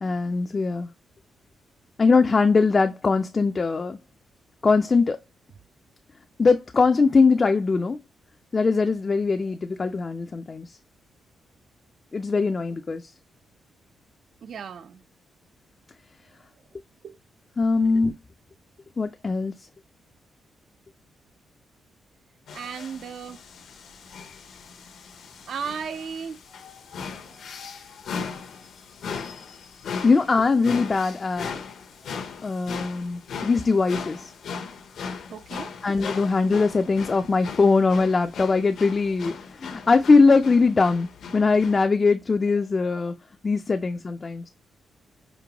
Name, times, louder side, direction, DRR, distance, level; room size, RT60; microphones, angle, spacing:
voice 1, 0.0-0.9 2.0-4.0 4.6-5.2 6.4-8.0 8.5-10.8 12.1-13.1 17.6-18.2 19.0-19.5 30.0-31.5 32.4-34.3 35.8-41.1 41.3-43.1 43.4-44.4, left 4 dB, 35° left, 0.3 m, -21 dB
voice 2, 14.4-15.0 17.0-17.2 22.5-23.4 25.5-26.4 35.3-35.7 43.7-43.8, right 6 dB, 60° right, 0.4 m, -35 dB
sound 1, 22.5-41.8, left 6 dB, 75° left, 0.7 m, -38 dB
5.1 x 2.2 x 2.8 m
cardioid pair, 100°, 0 cm